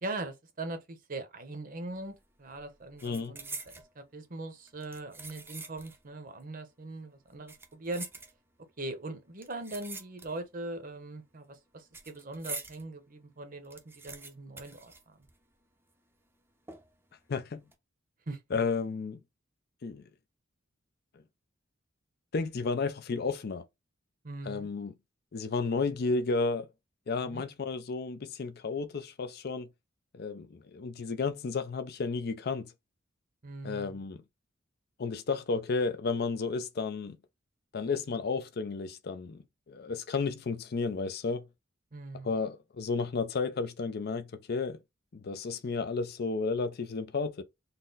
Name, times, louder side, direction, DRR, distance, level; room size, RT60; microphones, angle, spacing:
voice 1, 0.0-8.1 8.8-15.3 18.3-18.4 24.2-24.7 27.2-27.4 33.4-34.0 41.9-42.3, right 2 dB, 45° right, 0.8 m, -41 dB
sound 1, 1.9-2.2 2.5-3.9 4.7-6.1 6.4-6.5 7.3-8.7 9.4-10.6 10.9-12.8 13.2-13.3 13.5-15.6 15.9-16.0 16.7-17.1 17.5-17.7, right 3 dB, 10° right, 0.6 m, -45 dB
voice 2, 3.0-3.4 17.3-17.6 18.5-19.2 19.8-20.0 22.3-23.6 24.5-24.9 25.3-26.7 27.1-29.7 30.1-32.7 33.6-34.2 35.0-37.2 37.7-41.4 42.2-44.8 45.1-47.4, left 4 dB, 55° left, 0.5 m, -32 dB
4.1 x 2.1 x 3.8 m
head